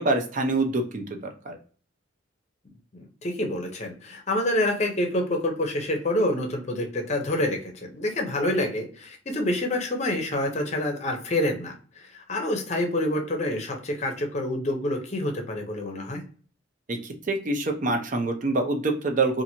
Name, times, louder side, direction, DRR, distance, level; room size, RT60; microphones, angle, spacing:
voice 1, 0.0-1.6 16.9-19.4, right 2 dB, 45° right, 4 dB, 0.5 m, -26 dB
voice 2, 2.9-16.2, left 1 dB, 35° left, 4 dB, 0.6 m, -27 dB
2.8 x 2.5 x 2.7 m, 0.41 s
head